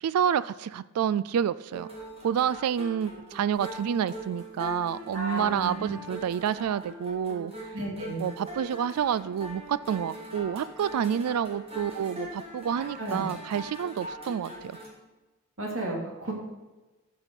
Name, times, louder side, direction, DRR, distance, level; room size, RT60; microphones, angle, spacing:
voice 1, 0.0-1.9 2.2-7.8 8.2-14.8, right 8 dB, 85° right, 18 dB, 0.3 m, -29 dB
sound 1, 1.7-14.9, equal, 25° right, 2.1 m, -42 dB
voice 2, 5.1-5.9 7.7-8.2 12.7-13.2 15.6-16.3, right 2 dB, 65° right, -1 dB, 2.5 m, -33 dB
12.0 x 5.8 x 5.2 m, 1.1 s
head